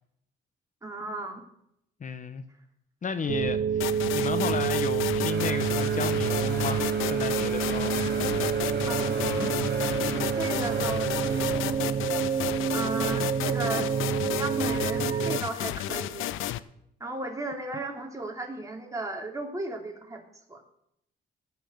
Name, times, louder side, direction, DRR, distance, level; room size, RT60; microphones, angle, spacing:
voice 1, 0.8-1.4 8.9-9.5 10.3-11.8 12.7-13.9 14.4-16.3 17.0-20.2 20.5-20.6, right 2 dB, 15° right, 3.4 m, -35 dB
voice 2, 2.0-2.4 3.0-7.9, left 5 dB, 40° left, 1.0 m, -33 dB
sound 1, 3.3-15.4, right 7 dB, 40° right, 0.6 m, -28 dB
sound 2, 3.8-16.6, left 13 dB, 85° left, 0.7 m, -33 dB
sound 3, 5.3-11.9, right 2 dB, 55° right, 5.6 m, -40 dB
17.5 x 5.9 x 7.9 m
cardioid pair, 90°, 20 cm